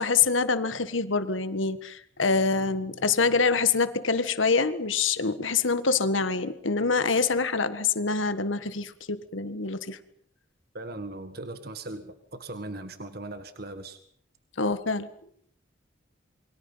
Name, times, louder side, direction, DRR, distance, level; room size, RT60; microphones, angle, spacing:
voice 1, 0.0-10.0 14.6-15.1, left 4 dB, 90° left, 12 dB, 1.6 m, -25 dB
voice 2, 10.7-14.0, right 2 dB, 55° right, 9 dB, 1.7 m, -39 dB
28.0 x 23.5 x 5.7 m, 0.63 s
head